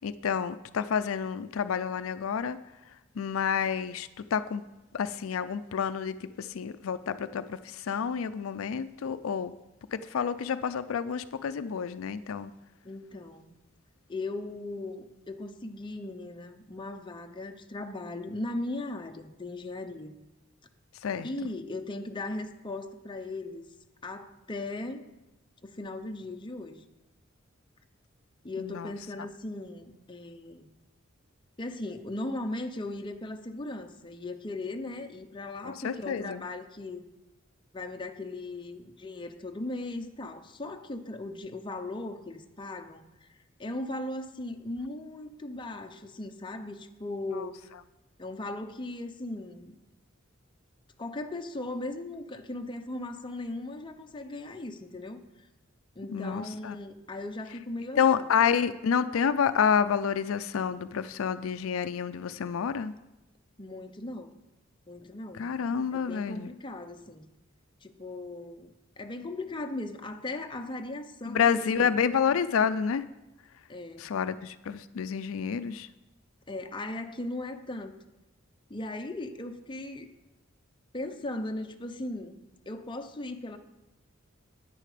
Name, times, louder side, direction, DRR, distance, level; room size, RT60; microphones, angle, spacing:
voice 1, 0.0-2.6 3.2-4.6 4.9-9.5 9.9-12.5 21.0-21.3 28.6-28.9 35.6-36.4 56.1-56.8 58.0-62.9 65.4-66.5 71.3-73.0 74.0-75.9, left 7 dB, 90° left, 13 dB, 0.4 m, -29 dB
voice 2, 12.8-13.5 14.1-20.2 21.2-23.7 24.0-25.0 25.6-26.9 28.4-30.7 31.6-37.1 37.7-43.3 43.6-47.6 48.2-49.8 51.0-55.2 56.0-58.3 63.6-64.3 64.9-65.4 65.9-67.3 67.8-72.0 73.7-74.1 76.5-78.0 78.7-80.1 80.9-82.4 82.7-83.6, left 2 dB, 25° left, 5 dB, 0.7 m, -38 dB
9.9 x 9.3 x 5.0 m, 0.97 s
head